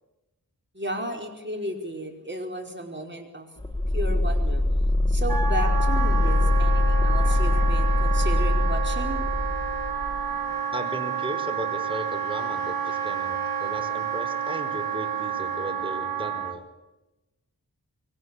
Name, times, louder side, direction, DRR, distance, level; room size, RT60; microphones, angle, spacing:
voice 1, 0.7-3.5 3.9-4.6 5.1-9.2, right 1 dB, 30° right, 2 dB, 5.0 m, -34 dB
sound 1, 3.6-10.2, left 1 dB, 10° left, 2.0 m, -23 dB
Wind instrument woodwind instrument, 5.3-16.6, right 7 dB, 65° right, 2.3 m, -30 dB
voice 2, 10.7-16.7, right 1 dB, 15° right, 7 dB, 4.9 m, -36 dB
23.0 x 18.5 x 9.8 m, 1.0 s
wide cardioid pair, 45°, 38 cm